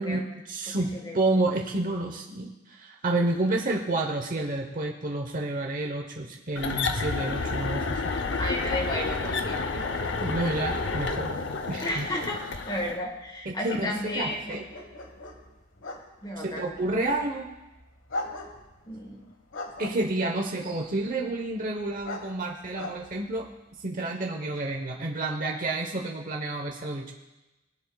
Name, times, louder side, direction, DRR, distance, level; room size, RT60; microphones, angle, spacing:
voice 1, 0.0-8.1 10.2-11.3 11.7-12.1 13.4-14.6 16.4-17.5 19.8-23.5 23.7-27.1, right 2 dB, 45° right, 1 dB, 1.0 m, -30 dB
sound 1, 6.6-13.0, left 3 dB, 65° left, 0.7 m, -30 dB
voice 2, 8.4-9.8 11.8-12.4 12.7-14.6 16.2-16.8 18.9-19.2, left 1 dB, 25° left, 1 dB, 1.5 m, -33 dB
sound 2, 13.0-23.9, left 2 dB, 85° left, 1.4 m, -42 dB
19.5 x 11.0 x 2.3 m, 1.0 s
head